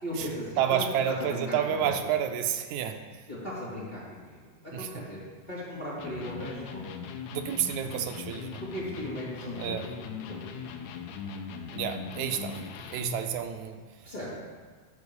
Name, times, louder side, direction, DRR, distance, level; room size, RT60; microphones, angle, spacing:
voice 1, 0.0-2.0 3.3-5.2 5.5-7.0 8.6-10.9 14.0-14.3, equal, 15° left, -9 dB, 2.2 m, -38 dB
voice 2, 0.6-3.0 4.7-4.9 7.3-8.6 9.6-9.9 11.7-12.6 12.9-13.8, right 9 dB, 85° right, 6 dB, 2.0 m, -29 dB
Electric guitar, 6.0-13.3, left 6 dB, 80° left, 2.0 m, -39 dB
9.7 x 4.5 x 6.8 m, 1.5 s
omnidirectional pair, 3.4 m